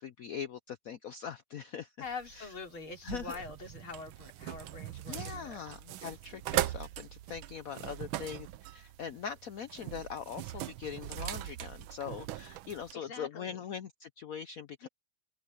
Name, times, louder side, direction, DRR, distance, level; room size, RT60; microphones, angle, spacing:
voice 1, 0.0-1.9 2.4-2.5 3.0-3.4 5.1-8.5 8.7-14.9, left 7 dB, 75° left, 0.8 m, -42 dB
voice 2, 2.0-5.6 12.9-13.7 14.8-14.9, left 4 dB, 90° left, 3.8 m, -44 dB
sound 1, 2.0-12.9, right 14 dB, 85° right, 1.5 m, -40 dB
omnidirectional pair, 2.2 m